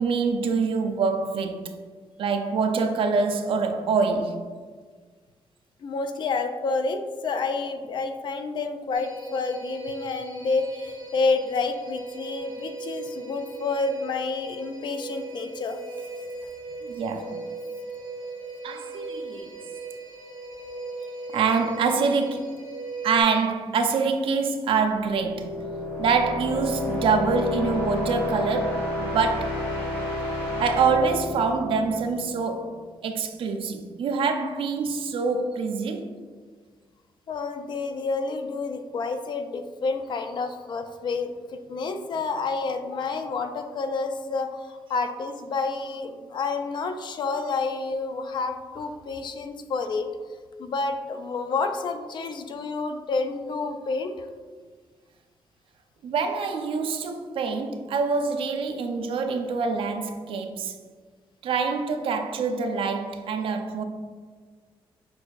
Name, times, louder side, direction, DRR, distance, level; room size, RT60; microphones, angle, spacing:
voice 1, 0.0-1.7 2.2-4.5 16.8-17.4 18.6-19.5 21.3-22.6 23.0-25.6 26.0-29.6 30.6-32.8 33.0-36.2 56.0-60.8 61.4-63.8, right 5 dB, 70° right, 0.4 m, -25 dB
voice 2, 5.8-15.8 37.3-50.1 50.6-54.3, left 4 dB, 55° left, 0.4 m, -29 dB
sound 1, 8.9-23.2, right 2 dB, 35° left, 1.3 m, -38 dB
sound 2, 24.9-32.6, left 2 dB, 90° left, 1.1 m, -30 dB
6.1 x 2.5 x 2.3 m
cardioid pair, 100°, 9 cm